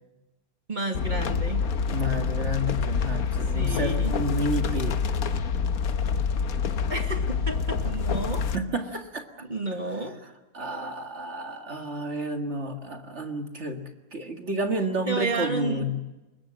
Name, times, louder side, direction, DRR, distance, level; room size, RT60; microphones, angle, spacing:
voice 1, 0.7-1.7 3.5-4.1 6.9-8.4 9.4-10.2 15.1-15.9, right 2 dB, 30° right, 4 dB, 2.2 m, -31 dB
sound 1, 0.9-8.6, left 5 dB, 80° left, 1.6 m, -27 dB
voice 2, 1.9-5.2 8.4-9.3 10.5-13.8 14.1-16.0, equal, 50° right, 5 dB, 2.2 m, -30 dB
24.5 x 22.0 x 7.6 m, 1.1 s
omnidirectional pair, 1.5 m